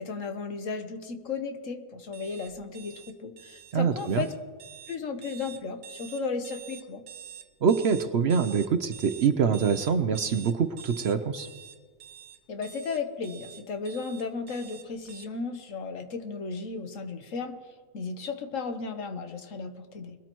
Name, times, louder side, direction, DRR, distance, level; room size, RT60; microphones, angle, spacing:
voice 1, 0.0-4.3 4.9-7.0 12.5-17.6 17.9-20.2, left 4 dB, 65° left, 7 dB, 1.4 m, -35 dB
sound 1, 2.1-15.2, right 9 dB, 80° right, 1.2 m, -47 dB
voice 2, 3.7-4.2 7.6-11.5, right 6 dB, 60° right, 9 dB, 0.8 m, -25 dB
21.5 x 13.0 x 3.0 m, 1.5 s
omnidirectional pair, 1.4 m